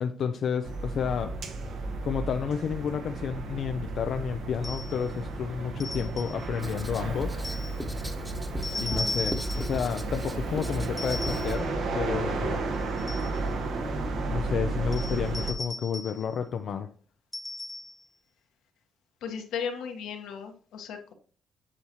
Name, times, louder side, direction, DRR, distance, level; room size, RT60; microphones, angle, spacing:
voice 1, 0.0-1.3 2.0-7.4 8.8-12.6 14.3-16.9, left 7 dB, 65° left, 7 dB, 0.5 m, -31 dB
Small Street Calm Distant Traffic Pedestrians Drunk man, 0.6-15.5, right 2 dB, 75° right, 1.6 m, -33 dB
sound 1, 4.6-5.1 5.8-6.5 7.4-7.8 8.6-9.8 11.0-11.6 12.7-13.4 14.9-16.3 17.3-18.0, left 2 dB, 20° left, 0.7 m, -36 dB
Writing, 6.6-11.6, equal, 10° right, 1.2 m, -37 dB
voice 2, 8.7-9.1 19.2-21.1, left 7 dB, 85° left, 4 dB, 1.4 m, -36 dB
8.5 x 6.4 x 3.0 m, 0.42 s
cardioid pair, 90°, 0 cm